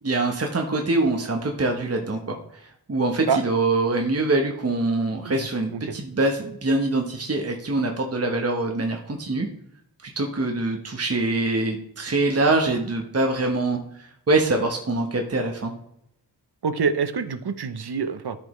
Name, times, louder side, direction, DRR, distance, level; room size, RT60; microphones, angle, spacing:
voice 1, 0.0-9.5 10.0-15.7, right 2 dB, 35° right, 2 dB, 1.1 m, -24 dB
voice 2, 16.6-18.4, right 5 dB, 70° right, 11 dB, 0.8 m, -26 dB
13.5 x 5.1 x 3.2 m, 0.77 s
wide cardioid pair, 75°, 40 cm